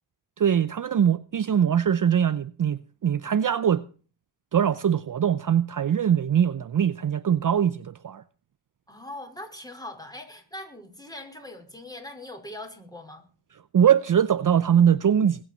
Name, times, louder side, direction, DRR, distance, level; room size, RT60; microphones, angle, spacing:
voice 1, 0.4-3.8 4.5-8.2 13.7-15.4, right 8 dB, 45° right, 0.7 m, -22 dB
voice 2, 8.9-13.3, left 1 dB, 10° left, 4.8 m, -41 dB
21.5 x 8.8 x 4.3 m
cardioid pair, 80°, 46 cm